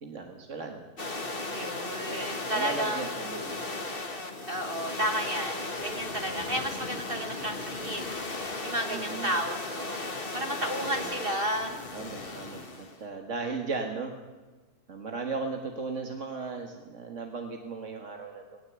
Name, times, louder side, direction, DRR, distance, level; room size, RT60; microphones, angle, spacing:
voice 1, 0.0-0.8 2.4-3.7 8.9-9.3 10.8-11.1 11.9-14.1 14.9-18.4, right 4 dB, 55° right, 3 dB, 2.0 m, -36 dB
sound 1, 1.0-13.0, left 2 dB, 40° left, 1.9 m, -36 dB
voice 2, 1.5-3.0 4.5-8.1 8.6-10.0 10.3-11.9, right 1 dB, 40° right, 4 dB, 1.7 m, -32 dB
19.0 x 19.0 x 8.3 m, 1.3 s
omnidirectional pair, 1.6 m